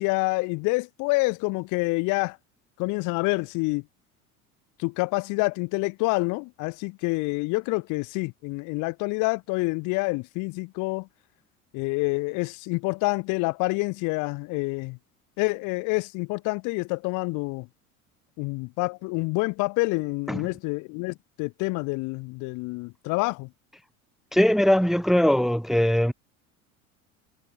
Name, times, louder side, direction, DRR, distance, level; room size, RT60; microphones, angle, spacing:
voice 1, 0.0-2.4 2.8-3.8 4.8-11.1 11.7-15.0 15.4-17.7 18.4-23.5, left 27 dB, 45° left, 1.2 m, -27 dB
voice 2, 24.3-26.1, equal, ahead, 1.0 m, -20 dB
figure-of-eight pair, 70°, 43 cm